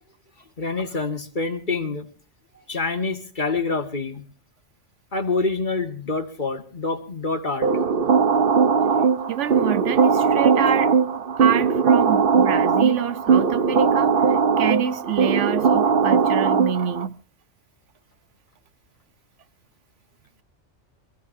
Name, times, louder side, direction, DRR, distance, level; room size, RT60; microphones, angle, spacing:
voice 1, 0.6-2.1 2.7-4.2 5.1-7.7, left 3 dB, 40° left, 2.0 m, -26 dB
sound 1, 7.6-17.1, right 6 dB, 50° right, 1.1 m, -19 dB
voice 2, 9.3-10.9 11.4-17.2, right 9 dB, 80° right, 1.2 m, -27 dB
26.0 x 15.5 x 2.7 m
omnidirectional pair, 1.2 m